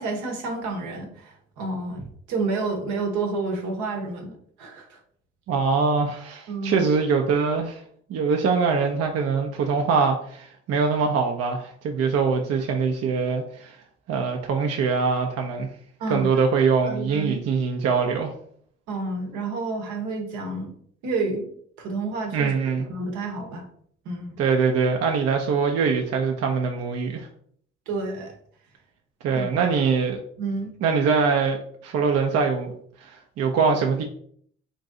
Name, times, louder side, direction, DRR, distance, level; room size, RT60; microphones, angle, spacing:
voice 1, 0.0-5.0 6.5-6.9 16.0-16.4 16.8-17.4 18.9-20.7 21.0-21.5 21.8-22.5 22.9-23.6 24.0-24.4 27.9-28.3 29.3-29.5 30.4-30.7, right 3 dB, 75° right, 3 dB, 0.9 m, -30 dB
voice 2, 5.5-7.8 8.1-13.8 14.1-15.7 16.1-18.3 22.3-22.9 24.4-27.3 29.2-30.2 30.8-31.6 31.8-32.7 33.0-34.0, right 5 dB, 55° right, 3 dB, 0.6 m, -23 dB
3.0 x 2.6 x 3.7 m, 0.62 s
hypercardioid pair, 60°, 29 cm